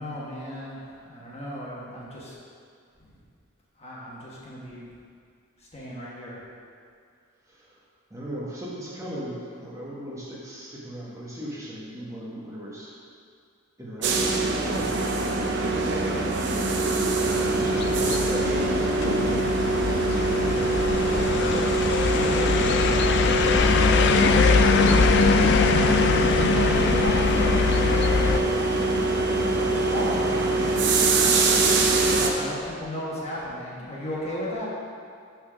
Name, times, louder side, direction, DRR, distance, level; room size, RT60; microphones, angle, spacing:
voice 1, 0.0-2.3 3.0-3.1 3.8-4.9 5.7-6.4 17.4-17.8 20.4-20.7 21.1-21.7 25.1-29.2 29.4-31.4 32.1-34.7, equal, 30° left, -6 dB, 1.3 m, -36 dB
voice 2, 7.5-7.8 8.1-12.9 13.8-15.9 17.2-19.4 22.1-23.9, equal, 15° right, -7 dB, 1.2 m, -37 dB
sound 1, 14.0-32.3, right 2 dB, 55° right, 0.6 m, -24 dB
Brass instrument, 14.5-22.9, right 3 dB, 10° left, 1.6 m, -40 dB
sound 2, 17.7-28.4, left 5 dB, 55° left, 0.3 m, -22 dB
6.0 x 4.3 x 6.2 m, 2.3 s
head